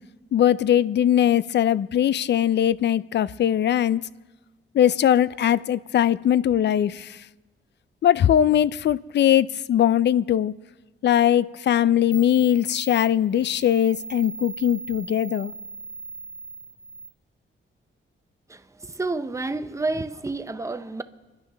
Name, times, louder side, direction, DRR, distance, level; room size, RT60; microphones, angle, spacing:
voice 1, 0.3-4.0 4.7-7.2 8.0-10.5 11.0-15.5, left 10 dB, 55° left, 0.4 m, -20 dB
sound 1, 11.7-11.8 12.1-17.1, right 2 dB, 15° left, 0.8 m, -39 dB
voice 2, 18.5-21.0, right 3 dB, 15° right, 0.6 m, -30 dB
27.5 x 11.0 x 3.4 m
wide cardioid pair, 140°, 21 cm